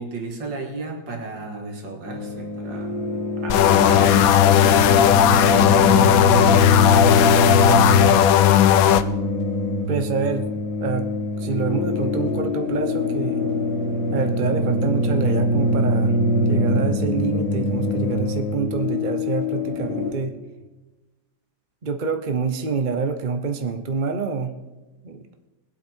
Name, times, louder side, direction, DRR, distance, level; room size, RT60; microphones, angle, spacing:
voice 1, 0.0-3.0 3.4-8.5, right 3 dB, 65° right, 2 dB, 2.6 m, -33 dB
sound 1, 2.0-20.1, left 1 dB, 65° left, 4.3 m, -23 dB
sound 2, 3.5-9.0, left 11 dB, 80° left, 0.7 m, -16 dB
voice 2, 9.9-10.5 10.8-11.1 11.4-13.5 14.1-20.3 21.8-24.5 25.0-25.2, right 5 dB, 40° right, 6 dB, 0.7 m, -26 dB
21.5 x 8.3 x 4.6 m, 1.1 s
omnidirectional pair, 2.2 m